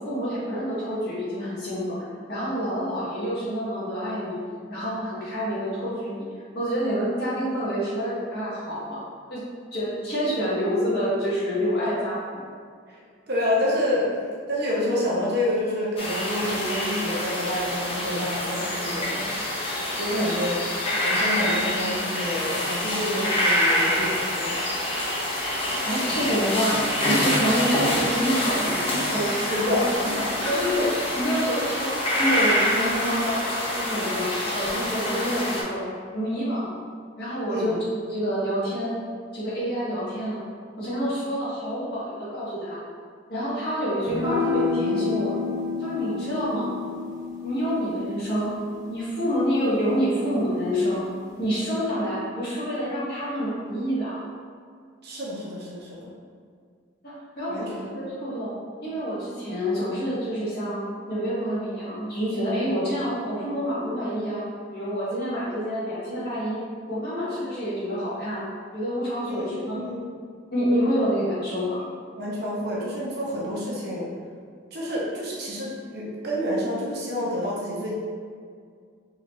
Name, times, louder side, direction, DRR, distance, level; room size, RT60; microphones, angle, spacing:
voice 1, 0.0-2.0 2.3-4.4 4.7-6.2 6.5-9.0 9.3-9.4 9.7-12.4 20.1-20.3 25.8-29.8 30.4-30.9 31.2-35.8 36.1-36.8 37.2-37.8 38.1-38.9 39.3-40.4 40.8-42.8 43.3-45.3 45.8-46.7 47.4-48.5 48.9-51.0 51.4-54.2 57.0-58.5 58.8-64.4 64.7-66.6 66.9-68.4 68.7-69.8 70.5-71.8, equal, 55° left, -9 dB, 1.5 m, -27 dB
voice 2, 13.3-14.2 14.5-19.3 20.0-20.6 21.0-24.5 29.5-30.5 30.8-30.9 37.5-37.8 55.0-56.1 57.5-57.7 69.3-70.1 72.2-74.1 74.7-77.9, left 1 dB, 55° right, -5 dB, 0.8 m, -28 dB
sound 1, 16.0-35.6, left 1 dB, 30° left, 0.7 m, -26 dB
sound 2, 44.1-50.6, left 5 dB, 15° right, 0.6 m, -31 dB
3.9 x 2.9 x 3.1 m, 2.1 s
head